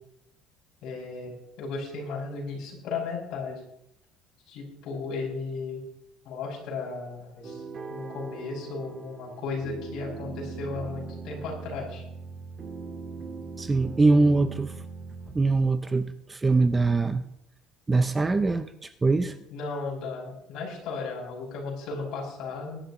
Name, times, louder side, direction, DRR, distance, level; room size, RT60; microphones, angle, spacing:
voice 1, 0.8-3.6 4.5-5.8 6.2-7.6 7.9-12.0 14.1-14.5 19.5-22.8, left 4 dB, 55° left, -3 dB, 6.1 m, -35 dB
sound 1, 7.4-15.4, right 4 dB, 30° right, 1.6 m, -40 dB
voice 2, 13.6-14.7 15.3-17.2 17.9-19.3, right 3 dB, 15° right, 11 dB, 0.4 m, -23 dB
21.5 x 11.5 x 3.0 m, 0.77 s
cardioid pair, 160°, 0 cm